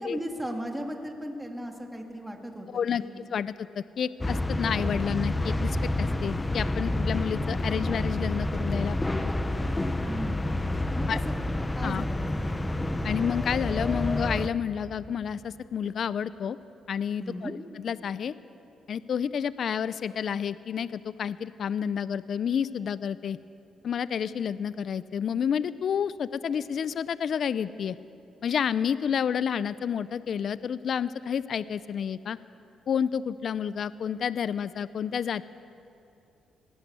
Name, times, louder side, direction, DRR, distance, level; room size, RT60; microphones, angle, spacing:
voice 1, 0.0-3.2 10.1-11.0 11.7-12.6 17.2-17.6, equal, 5° right, 2 dB, 2.6 m, -37 dB
voice 2, 3.3-9.0 9.2-9.3 11.1-11.2 11.8-12.0 13.0-16.6 16.9-17.6 17.8-18.3 18.9-23.4 23.8-28.0 28.4-32.4 32.9-35.4, left 8 dB, 55° left, 16 dB, 0.5 m, -30 dB
sound 1, 4.2-14.5, left 1 dB, 15° left, 1.0 m, -29 dB
20.5 x 17.5 x 8.2 m, 2.8 s
cardioid pair, 90°, 0 cm